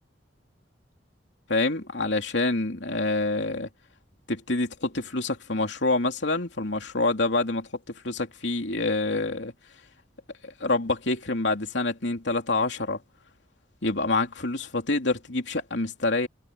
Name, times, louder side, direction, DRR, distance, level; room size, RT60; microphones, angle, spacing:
voice 1, 1.5-3.7 4.3-9.5 10.4-13.0 13.8-16.3, left 2 dB, 75° left, 3.1 m, -27 dB
open air
head